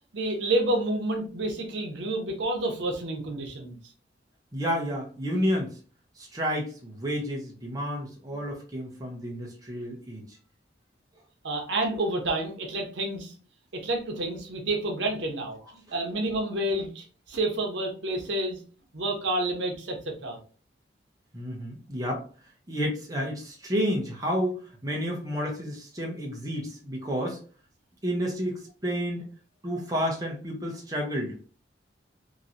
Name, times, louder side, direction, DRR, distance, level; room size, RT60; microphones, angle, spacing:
voice 1, 0.1-3.8 11.4-13.3 13.7-18.6 18.9-20.4, right 1 dB, 75° right, 2 dB, 0.8 m, -29 dB
voice 2, 4.5-5.8 6.2-10.4 21.3-22.2 22.7-27.4 28.0-29.2 29.6-31.4, equal, 20° right, -1 dB, 0.7 m, -30 dB
3.0 x 2.6 x 2.5 m, 0.39 s
head